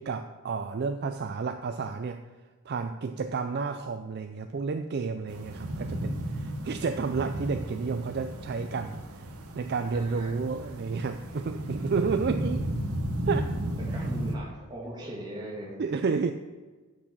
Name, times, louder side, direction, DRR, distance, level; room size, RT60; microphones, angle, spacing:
voice 1, 0.0-2.2 2.7-9.3 9.6-12.6 13.3-13.5 15.8-16.3, right 5 dB, 45° right, 8 dB, 0.4 m, -31 dB
sound 1, 5.3-14.4, right 1 dB, 80° right, 1.0 m, -34 dB
voice 2, 9.9-10.3 13.8-15.8, right 1 dB, 20° right, -4 dB, 2.4 m, -39 dB
8.2 x 6.3 x 6.0 m, 1.3 s
head